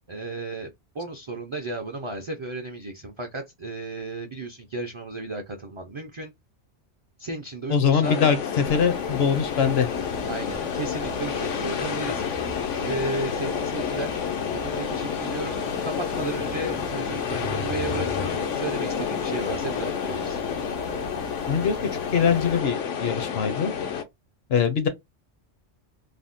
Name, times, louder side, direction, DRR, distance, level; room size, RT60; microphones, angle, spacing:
voice 1, 0.1-0.7 0.9-6.3 7.2-8.2 10.3-12.2 12.8-14.2 14.5-20.4, right 2 dB, 50° right, 0.3 m, -34 dB
voice 2, 7.7-9.9 21.5-21.8 22.1-23.7 24.5-24.9, left 6 dB, 65° left, 0.8 m, -22 dB
sound 1, 8.0-24.0, left 7 dB, 90° left, 1.0 m, -29 dB
sound 2, 8.6-22.6, right 3 dB, 80° right, 1.0 m, -41 dB
sound 3, 12.1-13.2 13.6-13.7 15.0-18.4, left 4 dB, 20° left, 0.4 m, -39 dB
3.4 x 2.1 x 2.5 m
omnidirectional pair, 1.2 m